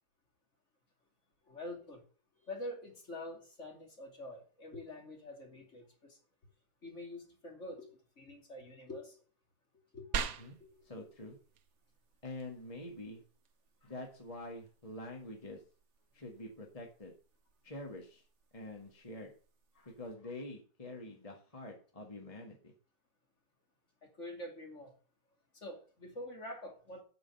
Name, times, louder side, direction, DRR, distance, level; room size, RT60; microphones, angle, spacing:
voice 1, 1.5-2.0 2.5-6.2 6.8-9.2 9.9-10.1 24.0-24.9 25.5-27.0, left 1 dB, 40° left, 1 dB, 2.9 m, -46 dB
sound 1, 10.1-20.1, right 7 dB, 60° right, 1.1 m, -47 dB
voice 2, 10.8-11.4 12.2-13.2 13.8-15.6 16.1-17.1 17.6-18.2 18.5-19.3 19.7-22.7, left 2 dB, 20° left, 1 dB, 1.7 m, -46 dB
8.9 x 5.6 x 7.9 m, 0.40 s
omnidirectional pair, 2.0 m